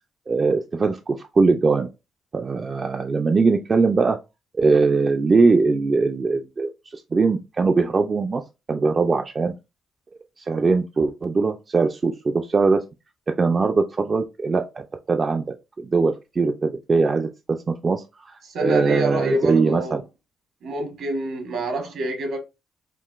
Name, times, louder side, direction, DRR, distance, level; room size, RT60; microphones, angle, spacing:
voice 1, 0.3-1.9 2.3-4.2 4.6-8.4 8.7-9.5 10.4-12.8 13.4-15.4 15.8-17.3 17.7-20.0, right 4 dB, 35° right, 0.3 m, -21 dB
voice 2, 18.4-20.0 20.6-22.4, right 1 dB, 75° right, 1.1 m, -27 dB
3.7 x 2.3 x 2.4 m
cardioid pair, 90°, 0 cm